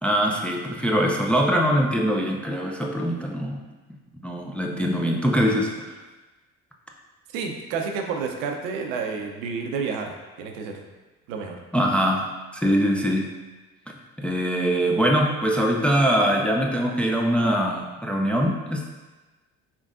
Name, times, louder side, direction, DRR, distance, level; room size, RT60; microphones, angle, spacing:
voice 1, 0.0-3.6 4.2-5.9 11.7-13.3 14.2-18.9, equal, 5° left, 0 dB, 0.4 m, -23 dB
voice 2, 7.3-10.8 11.3-11.6, right 5 dB, 80° right, 3 dB, 0.6 m, -30 dB
3.8 x 3.5 x 2.4 m, 1.2 s
hypercardioid pair, 60°, 38 cm